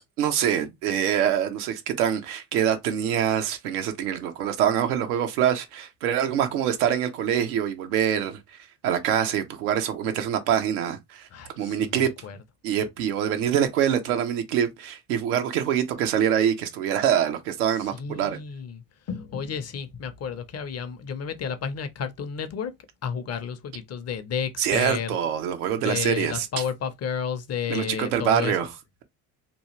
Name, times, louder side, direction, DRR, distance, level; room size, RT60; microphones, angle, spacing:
voice 1, 0.2-8.4 8.8-11.3 11.6-12.1 12.6-18.4 24.6-26.5 27.7-28.7, right 9 dB, 85° right, 0.8 m, -25 dB
voice 2, 11.3-12.4 17.9-18.8 19.1-22.7 23.0-25.2 25.8-28.6, left 7 dB, 35° left, 0.6 m, -32 dB
3.0 x 2.3 x 2.8 m
hypercardioid pair, 70°, 44 cm